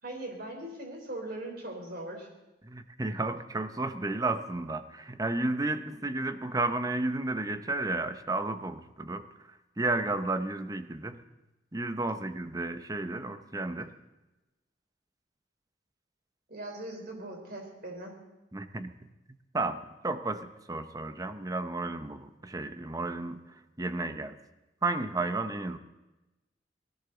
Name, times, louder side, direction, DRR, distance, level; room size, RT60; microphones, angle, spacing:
voice 1, 0.0-2.3 16.5-18.2, right 1 dB, 55° right, 1 dB, 3.9 m, -40 dB
voice 2, 2.6-9.3 9.8-11.2 11.7-13.9 18.5-18.9 19.5-24.4 24.8-25.8, right 2 dB, 20° right, 9 dB, 0.7 m, -32 dB
20.0 x 17.0 x 3.9 m, 1.0 s
head